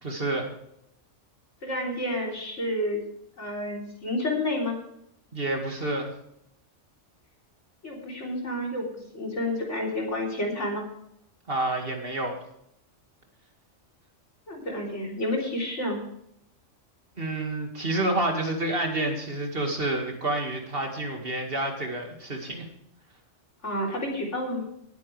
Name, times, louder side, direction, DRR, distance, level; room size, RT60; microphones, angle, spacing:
voice 1, 0.0-0.5 5.3-6.1 11.5-12.4 17.2-22.7, right 2 dB, 50° right, 3 dB, 2.3 m, -29 dB
voice 2, 1.6-3.0 3.4-4.8 7.8-8.9 9.1-10.8 14.5-16.0 23.6-24.6, left 1 dB, 70° left, -1 dB, 3.9 m, -30 dB
19.0 x 9.5 x 3.4 m, 0.76 s
omnidirectional pair, 1.2 m